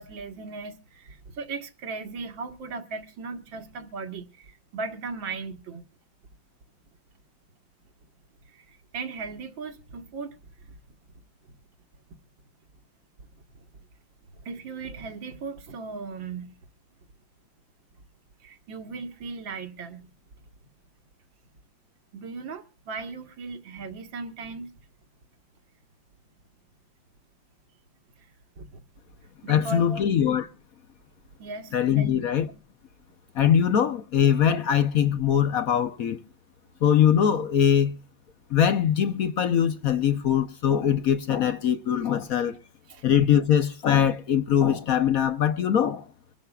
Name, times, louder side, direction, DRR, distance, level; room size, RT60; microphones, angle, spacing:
voice 1, 0.0-5.8 8.5-10.4 13.6-13.7 14.5-16.5 18.4-20.1 22.1-24.7 28.2-28.3 28.6-28.8 29.4-30.1 31.4-32.2 42.9-43.0, right 4 dB, 80° right, 2.3 m, -37 dB
voice 2, 29.5-30.5 31.7-32.5 33.3-36.2 36.8-37.9 38.5-42.6 43.0-46.1, left 9 dB, 60° left, 1.0 m, -22 dB
24.5 x 12.5 x 2.4 m
omnidirectional pair, 2.0 m